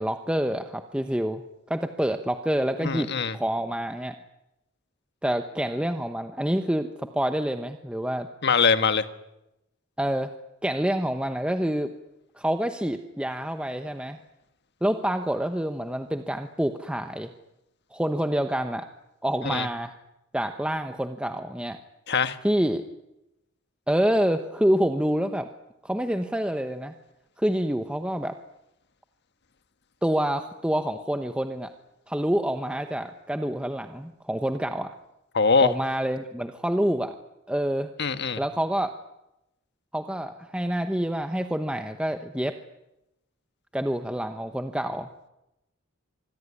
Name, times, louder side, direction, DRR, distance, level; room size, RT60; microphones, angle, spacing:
voice 1, 0.0-1.4 1.7-3.1 3.3-4.2 5.2-8.3 10.0-10.3 10.6-11.9 12.4-14.2 14.8-17.3 17.9-18.9 19.2-19.9 20.3-21.8 22.4-22.8 23.9-25.5 25.8-26.9 27.4-28.4 30.0-31.7 32.1-34.9 35.6-37.2 37.5-37.9 38.4-38.9 39.9-42.6 43.7-45.3, equal, 5° right, 7 dB, 1.0 m, -27 dB
voice 2, 2.8-3.3 8.4-9.0 19.4-19.7 22.1-22.4 35.3-35.7 38.0-38.4, left 5 dB, 60° left, 10 dB, 1.5 m, -22 dB
26.0 x 21.5 x 9.8 m, 0.92 s
head